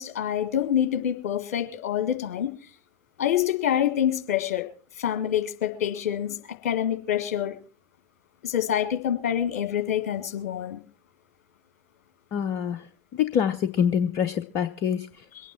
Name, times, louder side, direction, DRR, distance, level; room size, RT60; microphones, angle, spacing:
voice 1, 0.0-2.5 3.2-4.7 5.0-7.6 8.4-10.8, left 10 dB, 60° left, 8 dB, 1.8 m, -26 dB
voice 2, 12.3-15.2, left 8 dB, 45° left, 10 dB, 0.8 m, -26 dB
23.0 x 9.1 x 4.3 m, 0.38 s
figure-of-eight pair, 80°, 8 cm